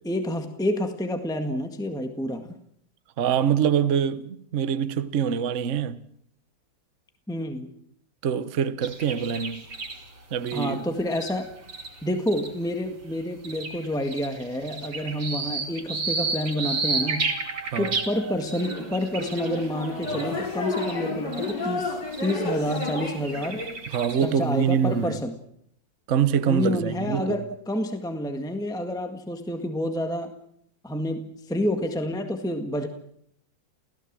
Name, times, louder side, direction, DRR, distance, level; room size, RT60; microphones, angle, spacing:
voice 1, 0.0-2.5 7.3-7.7 10.5-11.5 12.0-17.3 17.8-23.6 24.2-25.4 26.5-30.3 30.8-32.9, left 1 dB, ahead, 1.6 m, -29 dB
voice 2, 3.2-6.0 8.2-9.6 10.3-10.8 17.7-17.9 23.9-25.2 26.1-27.4, right 8 dB, 45° right, 1.2 m, -24 dB
sound 1, 8.8-12.7 13.1-21.1 21.3-21.5 22.1-22.4 22.7-24.5, right 4 dB, 80° right, 3.4 m, -33 dB
sound 2, 18.4-23.8, left 3 dB, 60° left, 4.9 m, -31 dB
29.5 x 16.5 x 7.6 m
omnidirectional pair, 2.1 m